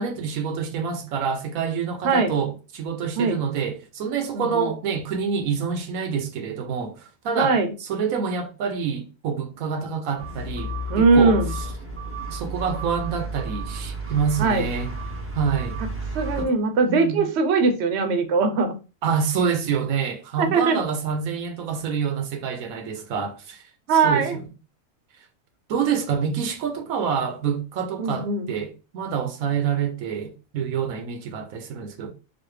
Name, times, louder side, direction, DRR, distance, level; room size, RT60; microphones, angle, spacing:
voice 1, 0.0-11.4 12.3-14.9 15.3-15.8 16.4-16.6 16.8-17.2 19.0-23.6 23.9-24.4 25.7-32.1, right 6 dB, 85° right, 1.1 m, -27 dB
voice 2, 4.3-4.7 7.4-7.7 10.9-11.5 14.4-14.7 16.1-18.7 20.4-20.8 23.9-24.4 28.0-28.5, right 4 dB, 60° right, 0.9 m, -20 dB
sound 1, 10.2-16.4, right 1 dB, 15° right, 0.5 m, -32 dB
4.0 x 2.4 x 3.2 m
omnidirectional pair, 1.4 m